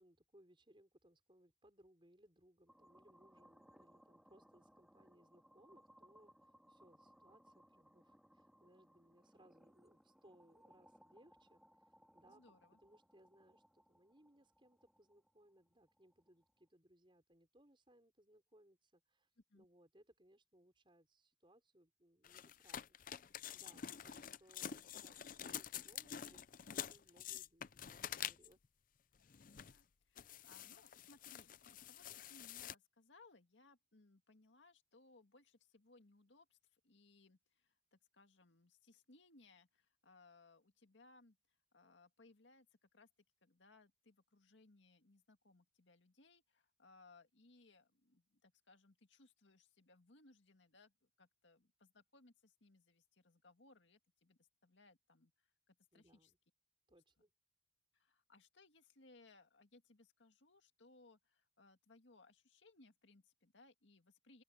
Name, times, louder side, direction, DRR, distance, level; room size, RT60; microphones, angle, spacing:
voice 1, 0.0-12.4 12.8-26.4 26.7-28.6 55.9-56.4 56.9-57.3, right 1 dB, 25° right, 5.8 m, -69 dB
sound 1, 2.7-16.7, equal, 5° right, 4.0 m, -68 dB
voice 2, 12.3-12.8 19.5-19.7 29.2-43.1 43.4-56.3 57.9-64.4, left 3 dB, 75° left, 2.0 m, -67 dB
sound 2, 22.2-28.6 29.3-29.8 30.2-32.7, left 9 dB, 45° left, 0.5 m, -48 dB
open air
head